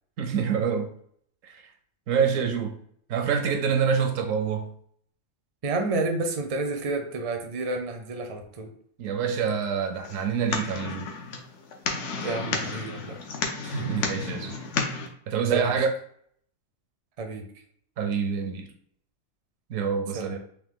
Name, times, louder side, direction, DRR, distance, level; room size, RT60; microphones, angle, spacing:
voice 1, 0.2-0.9 1.4-1.6 2.1-2.8 3.1-4.7 9.0-11.1 13.6-14.6 15.3-15.9 18.0-18.7 19.7-20.4, right 6 dB, 75° right, 1.0 m, -26 dB
voice 2, 5.6-8.7 12.2-13.2 13.7-13.9 15.5-15.9 17.2-17.4 20.1-20.4, right 3 dB, 45° right, 0.5 m, -30 dB
sound 1, 10.0-15.1, left 4 dB, 65° left, 1.0 m, -32 dB
3.8 x 2.8 x 3.6 m
omnidirectional pair, 1.4 m